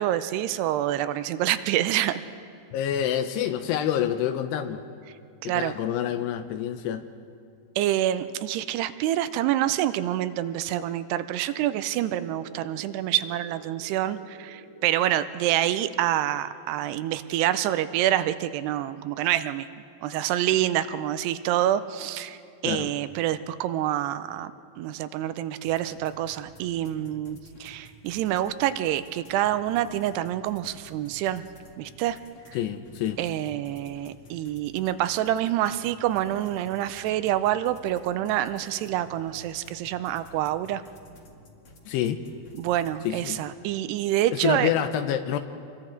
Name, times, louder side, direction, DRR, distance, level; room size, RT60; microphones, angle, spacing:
voice 1, 0.0-2.2 5.4-5.8 7.8-19.7 20.0-22.4 22.6-31.4 31.8-32.2 32.5-32.6 33.2-40.8 42.6-44.7, right 12 dB, 80° right, 12 dB, 2.6 m, -27 dB
voice 2, 2.7-4.8 5.4-7.0 22.6-22.9 32.5-33.2 41.9-42.2 43.0-43.4 44.3-45.4, left 10 dB, 80° left, 9 dB, 2.8 m, -27 dB
sound 1, 11.5-16.5, right 4 dB, 55° right, 2.3 m, -50 dB
sound 2, 25.6-43.3, equal, 45° left, 1.8 m, -52 dB
28.0 x 22.5 x 4.5 m, 2.4 s
omnidirectional pair, 4.9 m